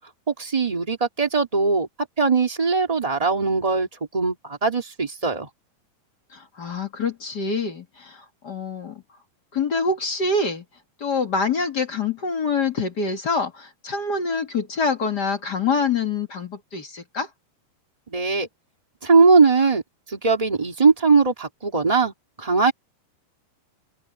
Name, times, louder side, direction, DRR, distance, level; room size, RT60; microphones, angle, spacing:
voice 1, 0.3-1.9 2.2-5.5 18.1-18.5 19.0-19.8 20.1-22.1 22.4-22.7, right 4 dB, 25° right, 0.8 m, -20 dB
voice 2, 6.3-9.0 9.5-10.6 11.0-17.3, left 4 dB, 40° left, 1.7 m, -25 dB
omnidirectional pair, 4.6 m